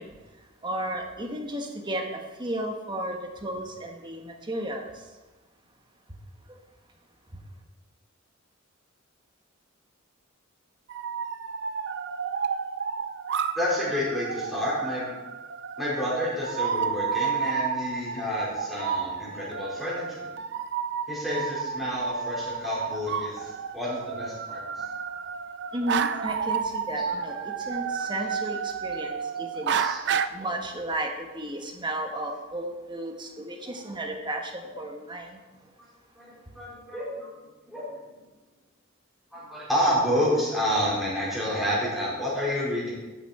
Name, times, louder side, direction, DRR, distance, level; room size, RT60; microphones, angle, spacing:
voice 1, 0.0-5.1 6.5-6.6 7.3-7.4 25.7-29.8 30.3-35.4, right 1 dB, 20° right, 3 dB, 1.3 m, -34 dB
sound 1, 10.9-30.3, right 6 dB, 55° right, 0.5 m, -31 dB
voice 2, 13.6-15.1 15.8-20.4 21.1-24.8 27.1-27.2 28.0-28.1 29.7-30.0 30.3-30.5 34.7-34.8 36.2-37.3 37.7-37.9 39.3-42.9, equal, ahead, -8 dB, 4.4 m, -29 dB
13.0 x 8.3 x 4.3 m, 1.2 s
head